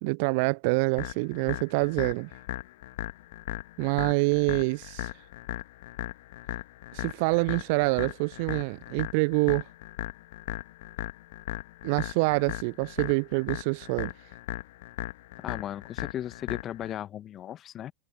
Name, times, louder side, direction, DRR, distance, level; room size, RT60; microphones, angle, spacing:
voice 1, 0.0-2.3 3.8-5.1 6.9-9.6 11.8-14.1, right 30 dB, 45° right, 0.4 m, -26 dB
Intro-Bassline, 1.0-17.0, left 17 dB, 55° left, 2.0 m, -38 dB
voice 2, 15.4-17.9, left 11 dB, 30° left, 1.2 m, -36 dB
figure-of-eight pair, 90°, 0 cm